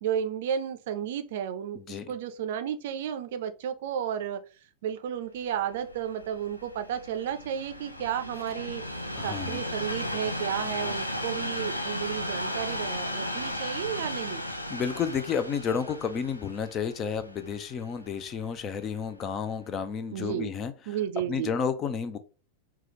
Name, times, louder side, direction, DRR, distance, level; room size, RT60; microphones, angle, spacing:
voice 1, 0.0-4.4 4.8-8.8 9.2-14.4 20.1-20.5 20.9-21.5, right 9 dB, 55° right, 9 dB, 0.5 m, -32 dB
voice 2, 1.7-2.1 9.2-9.6 14.7-21.0 21.3-22.2, left 6 dB, 30° left, 12 dB, 0.5 m, -31 dB
Train, 5.6-18.8 19.5-19.6, left 1 dB, 85° left, 0.5 m, -35 dB
4.7 x 2.3 x 3.0 m, 0.34 s
figure-of-eight pair, 90°, 0 cm